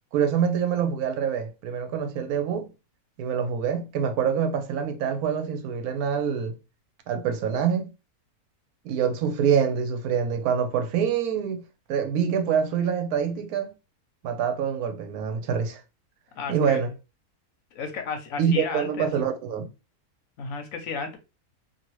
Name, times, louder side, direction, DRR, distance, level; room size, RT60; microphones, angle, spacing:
voice 1, 0.1-2.7 3.2-6.5 7.1-7.9 8.8-11.6 11.9-13.7 14.2-15.8 16.5-16.9 18.4-19.7, right 7 dB, 80° right, 1.1 m, -25 dB
voice 2, 16.3-16.8 17.7-19.1 20.4-21.2, left 5 dB, 70° left, 1.0 m, -33 dB
2.8 x 2.6 x 3.0 m
omnidirectional pair, 1.6 m